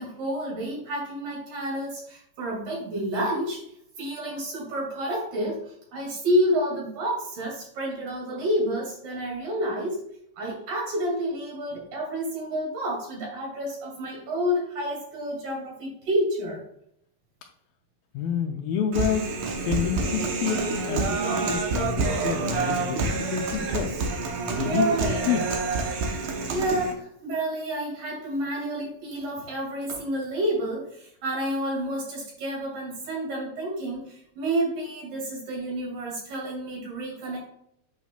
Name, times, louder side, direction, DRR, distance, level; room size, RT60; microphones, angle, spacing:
voice 1, 0.0-3.6 4.0-10.0 10.4-16.6 24.5-25.2 26.5-37.4, equal, 60° right, -2 dB, 3.9 m, -29 dB
voice 2, 18.1-19.3 19.6-23.9 24.5-25.5, left 8 dB, 80° left, 3 dB, 2.2 m, -29 dB
Human voice, 18.9-26.9, right 3 dB, 75° right, 1.6 m, -27 dB
8.1 x 5.8 x 2.4 m, 0.72 s
omnidirectional pair, 4.6 m